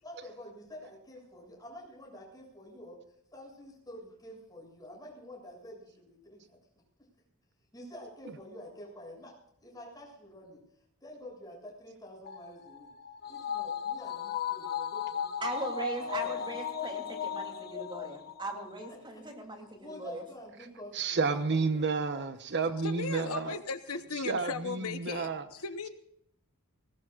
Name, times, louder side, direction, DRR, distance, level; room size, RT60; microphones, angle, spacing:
voice 1, 0.0-3.0 3.3-6.6 7.7-9.3 9.6-10.6 11.0-12.9 13.3-15.3 16.0-16.3 19.1-19.2 19.8-21.9 22.1-22.3, left 1 dB, 15° left, -1 dB, 7.4 m, -48 dB
sound 1, 12.3-18.9 19.3-19.4, left 7 dB, 45° left, 1.3 m, -36 dB
voice 2, 15.4-20.2, right 2 dB, 20° right, 2 dB, 3.0 m, -39 dB
voice 3, 20.9-23.6 24.3-25.4, right 4 dB, 55° right, 10 dB, 1.0 m, -30 dB
voice 4, 22.8-25.9, left 5 dB, 75° left, 10 dB, 1.0 m, -37 dB
19.5 x 19.5 x 2.5 m, 0.71 s
head